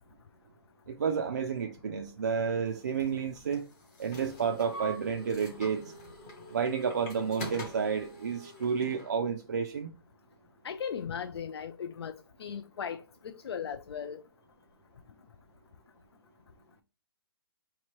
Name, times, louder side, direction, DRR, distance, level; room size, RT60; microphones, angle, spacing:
voice 1, 0.9-3.7 4.0-5.8 6.5-9.9, right 6 dB, 45° right, 0.4 m, -31 dB
sound 1, 2.7-9.1, equal, 10° left, 0.5 m, -45 dB
voice 2, 10.6-12.1 12.4-14.2, left 7 dB, 80° left, 0.4 m, -37 dB
5.1 x 2.9 x 3.0 m
hypercardioid pair, 180°, 13 cm